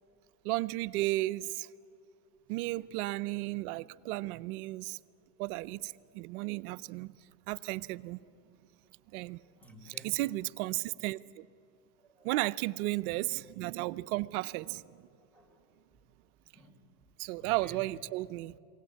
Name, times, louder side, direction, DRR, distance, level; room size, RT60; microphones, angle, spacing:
voice 1, 0.4-1.7 2.5-5.0 5.4-7.1 7.5-8.2 9.1-9.4 9.8-11.5 12.2-15.1 17.2-18.5, right 19 dB, 75° right, 0.7 m, -34 dB
voice 2, 9.1-10.2 12.1-12.3 15.3-15.6 16.5-16.9 17.4-17.8, right 1 dB, 5° left, 4.4 m, -54 dB
23.0 x 17.5 x 8.5 m
supercardioid pair, 100°, 45 cm